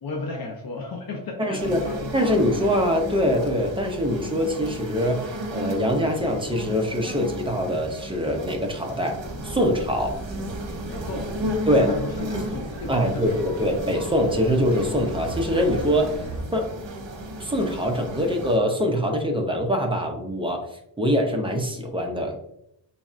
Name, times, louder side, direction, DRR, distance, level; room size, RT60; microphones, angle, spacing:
voice 1, 0.0-2.7 10.9-13.6 13.9-14.0, left 3 dB, 55° left, 0 dB, 0.6 m, -34 dB
voice 2, 1.4-1.8 2.1-9.2 9.4-10.2 11.7-11.9 12.3-12.5 12.9-16.2 16.5-16.7 17.4-20.7 21.0-22.4, equal, 10° right, 2 dB, 0.5 m, -23 dB
sound 1, 1.6-18.6, right 1 dB, 75° right, 0.8 m, -34 dB
sound 2, 9.2-16.4, right 1 dB, 30° right, 1.0 m, -36 dB
4.1 x 3.1 x 2.4 m, 0.78 s
wide cardioid pair, 165°, 44 cm